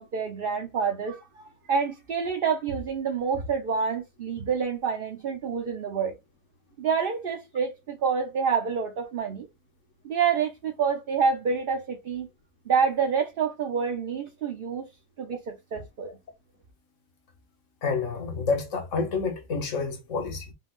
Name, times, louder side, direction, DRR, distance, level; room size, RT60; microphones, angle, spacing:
voice 1, 0.0-6.2 6.8-9.5 10.0-12.3 12.7-14.9 15.2-16.2, right 6 dB, 45° right, 0.9 m, -27 dB
voice 2, 17.8-20.5, left 4 dB, 60° left, 1.5 m, -29 dB
5.3 x 2.3 x 3.7 m
omnidirectional pair, 1.5 m